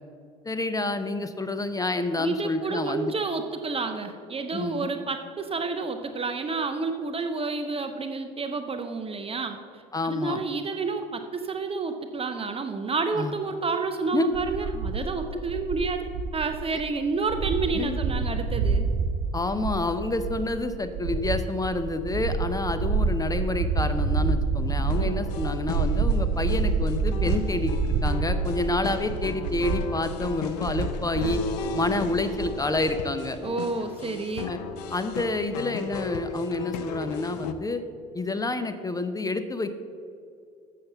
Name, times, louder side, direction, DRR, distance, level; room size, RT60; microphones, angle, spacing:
voice 1, 0.4-3.1 4.5-4.9 9.9-10.4 13.1-13.3 14.1-14.3 16.7-16.8 17.7-18.0 19.3-31.4 31.7-33.4 34.5-34.6 34.9-37.8 38.1-39.7, left 2 dB, 20° left, 9 dB, 0.7 m, -28 dB
voice 2, 2.2-18.9 25.0-25.2 33.4-34.5, right 4 dB, 30° right, 6 dB, 0.7 m, -30 dB
sound 1, 14.3-32.9, right 4 dB, 65° right, 0.6 m, -28 dB
sound 2, 24.9-37.5, left 5 dB, 85° left, 0.6 m, -35 dB
7.5 x 6.8 x 6.7 m, 2.4 s
hypercardioid pair, 70°, 20 cm